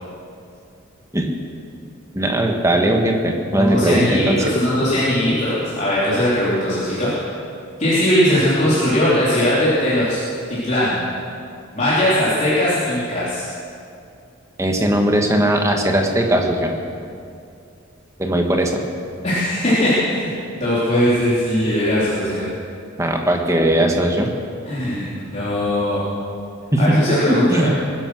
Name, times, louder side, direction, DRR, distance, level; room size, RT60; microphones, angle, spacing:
voice 1, 2.1-4.4 14.6-16.7 18.2-18.8 23.0-24.3 26.7-27.0 27.3-27.7, right 1 dB, 15° right, 2 dB, 1.6 m, -18 dB
voice 2, 3.5-7.2 7.8-10.2 10.5-11.0 11.7-13.5 19.2-20.3 20.6-22.5 24.6-26.0 26.8-27.7, left 1 dB, 35° left, -10 dB, 3.5 m, -19 dB
21.0 x 10.5 x 6.3 m, 2.4 s
head